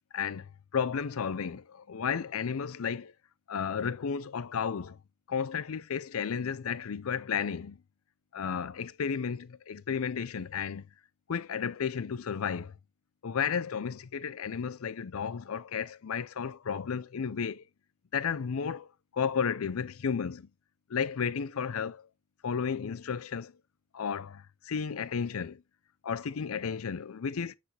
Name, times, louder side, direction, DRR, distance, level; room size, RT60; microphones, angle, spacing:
voice 1, 0.1-3.1 3.5-5.0 5.3-7.8 8.3-10.9 11.3-12.7 13.2-17.6 18.1-20.5 20.9-22.1 22.4-23.5 23.9-25.6 26.0-27.6, left 6 dB, 85° left, 0.5 m, -33 dB
9.7 x 4.9 x 3.2 m
head